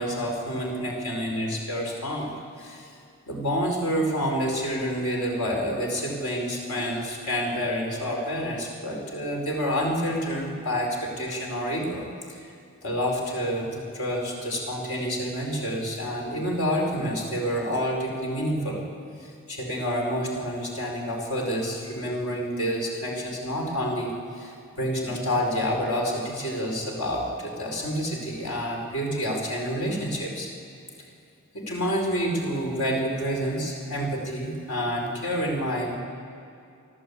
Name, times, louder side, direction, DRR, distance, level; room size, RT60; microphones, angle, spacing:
voice 1, 0.0-2.3 2.6-2.9 3.3-12.4 12.8-18.8 19.2-30.5 31.5-36.0, equal, 70° left, -1 dB, 5.0 m, -28 dB
28.5 x 12.0 x 8.7 m, 2.5 s
head